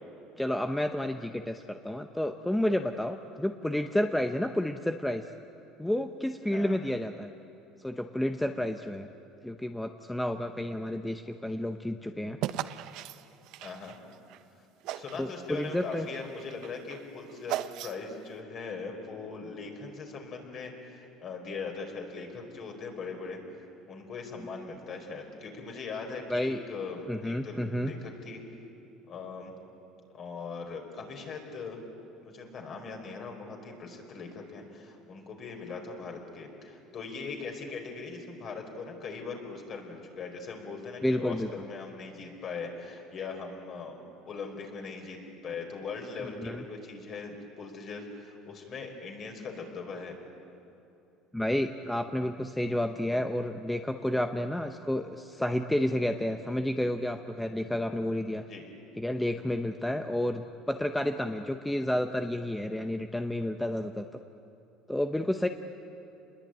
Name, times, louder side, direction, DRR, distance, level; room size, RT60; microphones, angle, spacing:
voice 1, 0.4-5.2 5.8-7.3 7.8-9.1 9.4-12.4 15.1-16.1 26.3-26.6 27.1-27.9 41.0-41.5 46.4-46.6 51.3-58.4 59.0-64.1 64.9-65.5, left 1 dB, 5° left, 6 dB, 0.8 m, -30 dB
sound 1, 12.4-14.4 14.8-15.3 15.6-18.2, right 13 dB, 65° right, 0.9 m, -37 dB
voice 2, 13.6-14.0 14.9-28.4 29.1-29.5 30.1-31.8 32.2-44.0 44.2-45.2 45.4-50.2 58.5-58.7, left 4 dB, 40° left, 3 dB, 4.9 m, -40 dB
29.0 x 21.5 x 9.1 m, 2.9 s
cardioid pair, 135°, 0 cm